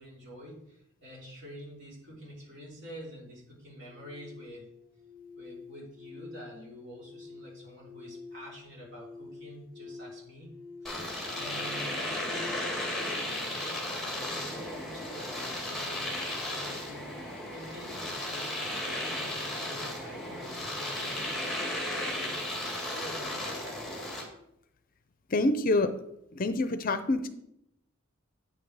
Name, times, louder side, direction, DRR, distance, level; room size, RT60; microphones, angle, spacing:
voice 1, 0.0-4.7 5.3-10.5 10.8-10.9 11.3-21.6 22.2-22.4 22.8-23.8, equal, 55° right, -4 dB, 3.5 m, -47 dB
sound 1, 3.7-14.8, left 4 dB, 20° left, 1.2 m, -49 dB
Domestic sounds home sounds, 10.9-24.3, left 1 dB, ahead, 1.8 m, -35 dB
voice 2, 25.3-25.9 26.3-27.3, left 2 dB, 45° left, 11 dB, 0.5 m, -26 dB
8.6 x 5.8 x 4.8 m, 0.78 s
head